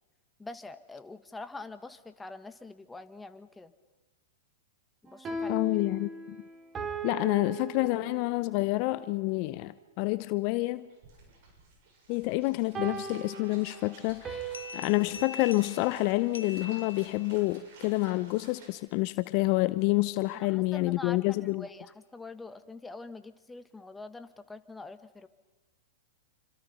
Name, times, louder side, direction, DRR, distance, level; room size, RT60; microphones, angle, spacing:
voice 1, 0.4-3.7 5.0-5.7 20.3-25.3, left 3 dB, 10° left, 1.4 m, -44 dB
sound 1, 5.1-8.5 12.7-15.2, right 3 dB, 25° right, 3.8 m, -38 dB
voice 2, 5.5-6.4 7.0-10.9 12.1-21.6, left 21 dB, 50° left, 0.7 m, -28 dB
sound 2, 10.5-10.6 10.8-18.7, right 3 dB, 55° right, 8.0 m, -54 dB
sound 3, 14.5-17.5, left 6 dB, 90° left, 1.0 m, -44 dB
27.5 x 25.5 x 5.6 m
hypercardioid pair, 110°, 0 cm